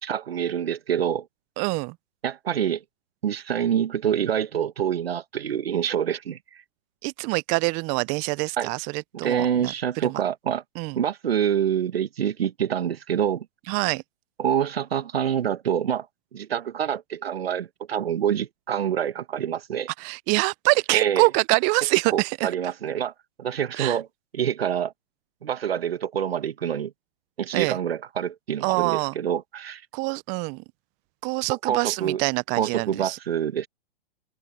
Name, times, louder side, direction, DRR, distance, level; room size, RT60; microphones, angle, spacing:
voice 1, 0.0-1.3 2.2-2.8 3.2-6.6 8.6-8.7 9.2-10.6 10.9-13.5 14.4-16.1 16.3-19.9 20.9-21.2 22.1-23.1 23.4-24.1 24.3-24.9 25.4-26.9 27.4-29.8 31.6-32.2 32.6-33.7, right 9 dB, 75° right, 1.4 m, -26 dB
voice 2, 1.6-1.9 7.0-9.7 10.0-10.2 10.8-11.0 13.7-14.0 20.0-22.5 23.8-24.0 27.5-27.8 28.6-29.1 29.9-30.6 31.2-33.2, right 29 dB, 25° right, 0.5 m, -25 dB
open air
hypercardioid pair, 125°, 30 cm